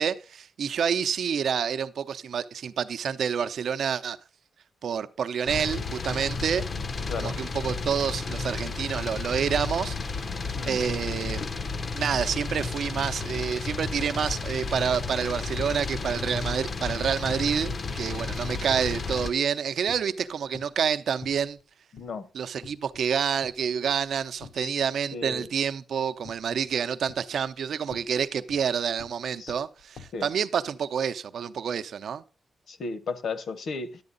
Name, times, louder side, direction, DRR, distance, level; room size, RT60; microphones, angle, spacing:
voice 1, 0.0-4.2 4.8-6.6 7.2-10.0 10.7-11.4 11.9-21.6 22.3-32.2, right 7 dB, 65° right, 0.7 m, -28 dB
sound 1, 5.5-19.3, left 4 dB, 35° left, 0.6 m, -32 dB
sound 2, 16.1-16.5 16.8-19.6 19.9-20.8 21.2-21.6 22.0-22.1 22.6-23.1 23.4-24.8 25.3-25.7 26.2-26.7 27.0-30.3, left 5 dB, 80° left, 1.1 m, -49 dB
voice 2, 21.9-22.3 24.6-25.5 29.4-29.5 30.1-30.3 32.7-34.0, left 4 dB, 55° left, 1.0 m, -35 dB
11.5 x 8.7 x 3.9 m
wide cardioid pair, 165°, 0 cm